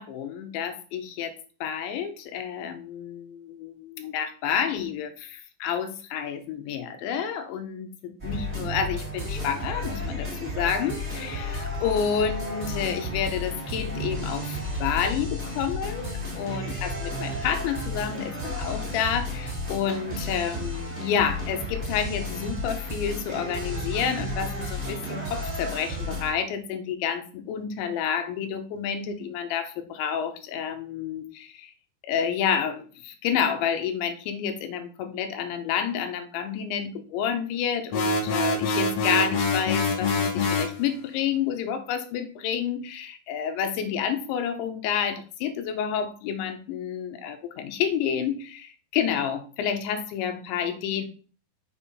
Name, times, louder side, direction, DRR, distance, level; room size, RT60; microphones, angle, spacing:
voice 1, 0.0-31.7 32.0-51.0, left 8 dB, 85° left, 7 dB, 3.3 m, -29 dB
sound 1, 8.2-26.3, left 1 dB, 15° right, 2.4 m, -32 dB
sound 2, 37.9-40.8, left 3 dB, 70° left, 1.7 m, -25 dB
6.6 x 5.6 x 4.0 m, 0.39 s
omnidirectional pair, 5.1 m